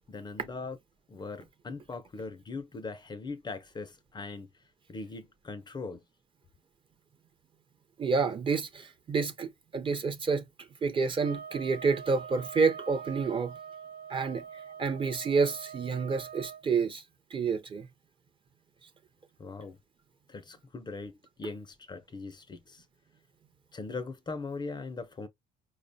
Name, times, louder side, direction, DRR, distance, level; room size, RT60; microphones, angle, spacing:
voice 1, 0.1-0.8 1.1-4.5 4.9-6.0 19.4-19.8 20.3-22.8 23.7-25.3, left 3 dB, 25° left, 0.5 m, -40 dB
voice 2, 8.0-10.4 10.8-13.5 14.1-14.4 14.8-17.0 17.3-17.9, right 5 dB, 30° right, 0.6 m, -29 dB
sound 1, 11.2-16.6, right 7 dB, 65° right, 0.8 m, -44 dB
4.7 x 2.1 x 2.6 m
cardioid pair, 110°, 17 cm